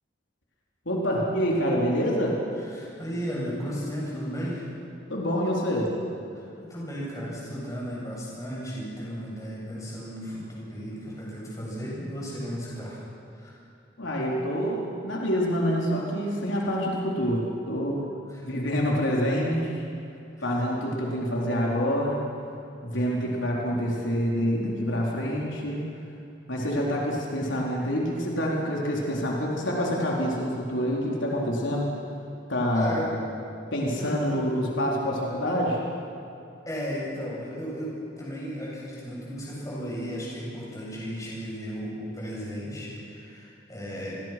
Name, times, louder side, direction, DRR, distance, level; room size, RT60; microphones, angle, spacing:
voice 1, 0.8-2.4 5.1-5.9 14.0-18.0 18.4-19.8 20.4-22.3 22.8-25.8 26.5-31.9 32.5-32.9 33.7-35.8, equal, 80° left, -3 dB, 4.3 m, -26 dB
voice 2, 2.7-4.7 6.3-13.0 13.3-13.6 18.3-18.5 20.4-20.5 22.9-23.0 32.7-33.1 34.0-34.4 36.6-44.2, equal, 15° left, -5 dB, 8.0 m, -35 dB
29.5 x 21.5 x 6.1 m, 2.7 s
head